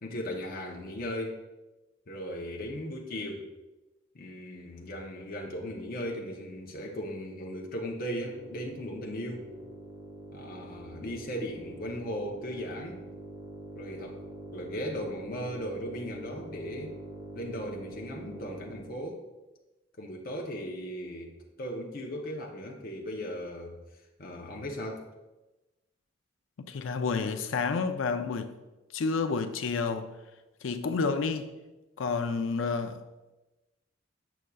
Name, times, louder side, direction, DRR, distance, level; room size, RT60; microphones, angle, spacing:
voice 1, 0.0-1.4 2.1-3.5 4.1-9.5 10.3-13.0 13.8-14.2 14.5-16.9 17.3-19.2 20.0-21.3 21.6-23.8 24.2-25.0, equal, 50° left, 0.7 m, -37 dB
sound 1, 8.0-19.1, right 2 dB, 20° right, 0.6 m, -45 dB
voice 2, 26.6-28.5 28.9-30.1 30.6-31.5 32.0-33.0, left 4 dB, 90° left, 0.5 m, -30 dB
6.8 x 6.2 x 2.3 m
head